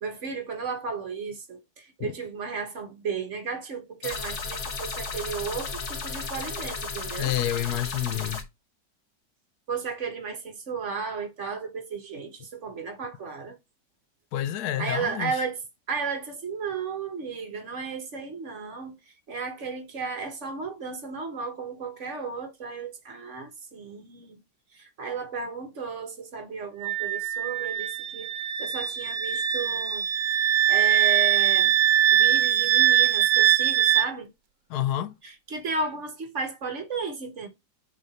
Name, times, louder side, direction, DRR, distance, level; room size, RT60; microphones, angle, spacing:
voice 1, 0.0-7.3 9.7-13.6 14.8-15.6 15.9-24.4 24.7-28.3 28.6-30.0 30.7-31.7 32.1-34.3 35.2-37.5, right 4 dB, 45° right, 1.5 m, -34 dB
sound 1, 4.0-8.4, left 4 dB, 45° left, 1.3 m, -34 dB
voice 2, 7.2-8.4 14.3-15.4 34.7-35.1, left 12 dB, 70° left, 1.1 m, -29 dB
Wind instrument woodwind instrument, 26.8-34.1, right 11 dB, 70° right, 0.8 m, -22 dB
6.4 x 3.8 x 4.1 m
omnidirectional pair, 1.9 m